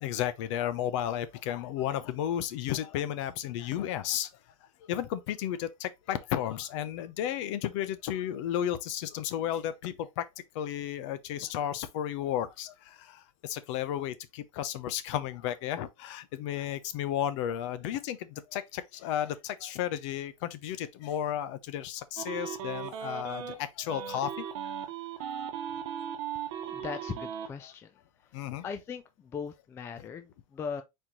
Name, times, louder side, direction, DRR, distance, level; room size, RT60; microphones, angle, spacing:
voice 1, 0.0-4.3 4.9-10.2 10.5-24.4 28.3-28.6, left 11 dB, 50° left, 0.7 m, -33 dB
sound 1, 22.2-23.5 23.9-27.5, right 8 dB, 55° right, 1.1 m, -37 dB
voice 2, 26.7-27.9 28.6-30.8, left 6 dB, 15° left, 0.3 m, -39 dB
4.4 x 3.0 x 3.7 m
supercardioid pair, 150°, 19 cm